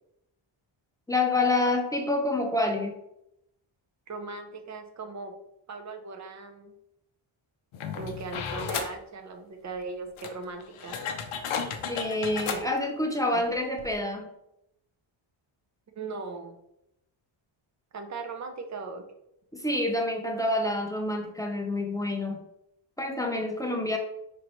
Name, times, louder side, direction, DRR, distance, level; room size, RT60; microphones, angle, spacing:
voice 1, 1.1-3.0 11.9-14.3 19.5-22.4 23.0-24.0, left 2 dB, 10° left, 2 dB, 0.4 m, -27 dB
voice 2, 4.1-5.4 5.7-6.7 8.0-11.0 13.3-13.4 15.9-16.6 17.9-19.0, right 4 dB, 35° right, 5 dB, 0.6 m, -38 dB
sound 1, 7.7-9.0 9.8-9.9 10.2-12.6 13.5-13.6 13.8-14.0, left 6 dB, 90° left, 0.7 m, -34 dB
5.2 x 3.2 x 2.9 m, 0.81 s
wide cardioid pair, 155°, 49 cm